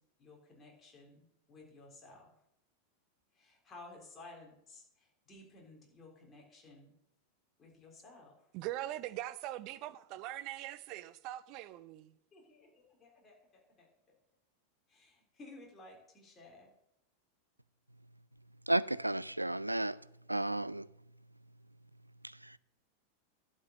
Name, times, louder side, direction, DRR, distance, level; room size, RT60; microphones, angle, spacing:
voice 1, 0.2-2.4 3.3-7.0 7.6-8.5 12.3-13.9 14.9-16.7, left 2 dB, 20° left, 3.6 m, -56 dB
voice 2, 8.5-12.1, right 14 dB, 40° right, 0.6 m, -42 dB
voice 3, 18.7-20.0 20.3-20.9 22.2-22.6, right 1 dB, 85° right, 0.4 m, -33 dB
11.5 x 5.5 x 7.9 m
figure-of-eight pair, 90°, 0 cm